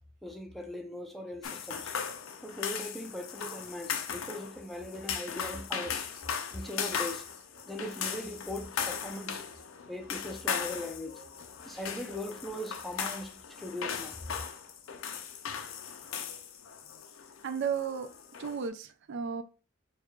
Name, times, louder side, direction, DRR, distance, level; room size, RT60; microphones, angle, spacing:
voice 1, 0.2-1.9 2.4-6.0 6.5-7.2 7.7-9.4 9.9-11.2 11.6-14.2, left 1 dB, ahead, 0.5 m, -40 dB
sound 1, 1.4-18.7, left 7 dB, 70° left, 0.5 m, -38 dB
voice 2, 17.4-18.1 18.4-19.4, right 6 dB, 60° right, 0.3 m, -33 dB
6.3 x 2.4 x 2.3 m
head